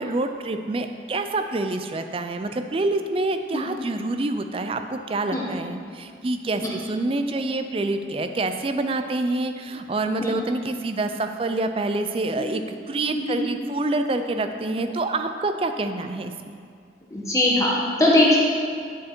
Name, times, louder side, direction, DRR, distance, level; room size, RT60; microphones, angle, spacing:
voice 1, 0.0-16.6, right 2 dB, 30° right, 7 dB, 0.4 m, -27 dB
voice 2, 13.1-13.5 14.7-14.8 17.1-18.4, left 1 dB, 15° left, -4 dB, 1.0 m, -21 dB
9.4 x 5.1 x 4.4 m, 2.2 s
head